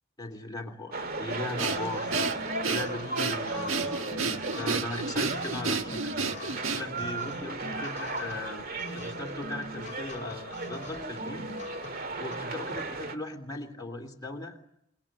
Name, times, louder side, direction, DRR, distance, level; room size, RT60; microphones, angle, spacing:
voice 1, 0.2-2.1 2.7-6.1 6.4-8.6 8.9-11.6 12.2-14.6, left 2 dB, 20° left, 1 dB, 3.2 m, -38 dB
sound 1, 0.9-13.2, right 2 dB, 45° right, 1.9 m, -36 dB
Breathing, 1.6-7.1, right 4 dB, 75° right, 1.5 m, -31 dB
sound 2, 1.7-12.4, left 1 dB, 35° left, 3.2 m, -43 dB
28.0 x 22.5 x 8.8 m, 0.77 s
head